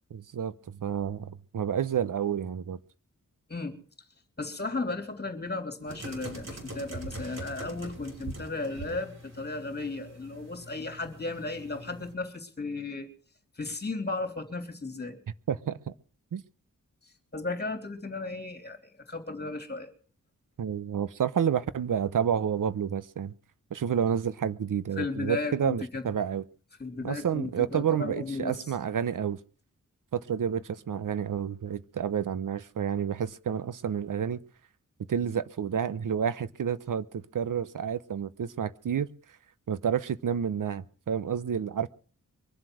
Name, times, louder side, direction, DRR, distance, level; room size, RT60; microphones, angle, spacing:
voice 1, 0.1-2.8 15.5-15.9 16.3-16.4 20.6-23.3 23.7-26.4 27.0-29.4 30.1-34.4 35.1-39.1 39.7-41.9, right 8 dB, 75° right, 0.8 m, -30 dB
voice 2, 4.4-13.1 13.6-15.2 17.0-19.9 25.0-26.0 26.8-28.6, left 3 dB, 30° left, 3.1 m, -35 dB
sound 1, 5.9-12.1, right 1 dB, 55° right, 5.5 m, -43 dB
23.5 x 7.8 x 6.2 m
wide cardioid pair, 110°, 32 cm